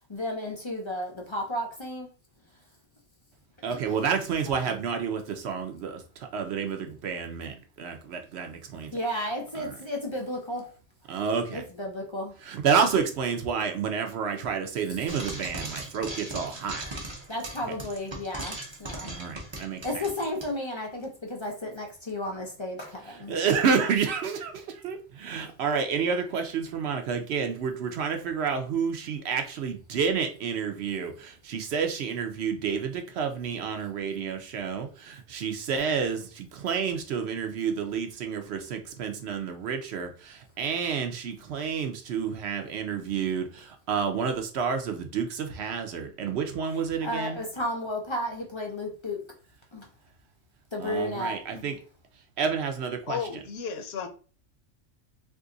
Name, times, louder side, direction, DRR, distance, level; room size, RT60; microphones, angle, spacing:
voice 1, 0.1-2.1 3.7-3.9 4.4-4.7 8.9-10.7 11.5-12.3 14.9-15.0 17.3-19.2 19.8-23.4 47.0-49.2 49.7-49.8 50.7-51.7, left 1 dB, 40° left, 0.4 m, -33 dB
voice 2, 3.6-8.9 9.6-9.7 11.1-11.6 12.4-16.8 19.0-20.0 23.3-47.4 50.8-51.8 52.4-53.2, right 6 dB, 65° right, 0.8 m, -29 dB
Frying (food), 15.1-20.5, right 1 dB, 30° right, 0.6 m, -38 dB
voice 3, 53.1-54.1, left 6 dB, 60° left, 0.8 m, -33 dB
2.6 x 2.5 x 3.7 m
omnidirectional pair, 1.3 m